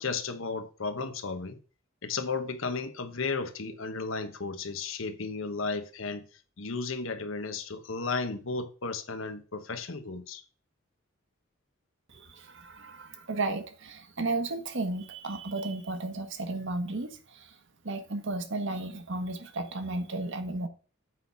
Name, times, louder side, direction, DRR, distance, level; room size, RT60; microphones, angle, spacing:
voice 1, 0.0-1.6 2.0-6.3 6.6-10.4, left 4 dB, 70° left, 1.0 m, -34 dB
voice 2, 12.1-17.6 17.8-20.7, right 2 dB, 60° right, 1.2 m, -34 dB
7.9 x 3.9 x 5.6 m
head